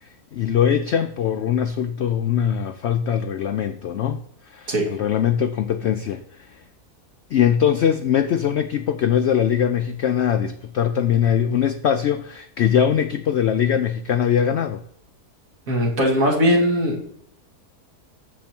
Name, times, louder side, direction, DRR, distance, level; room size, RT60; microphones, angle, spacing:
voice 1, 0.0-4.2 4.5-6.2 7.3-14.8, left 9 dB, 70° left, 0.6 m, -21 dB
voice 2, 15.7-17.2, equal, 60° right, 2.6 m, -20 dB
9.3 x 7.2 x 4.4 m
omnidirectional pair, 1.6 m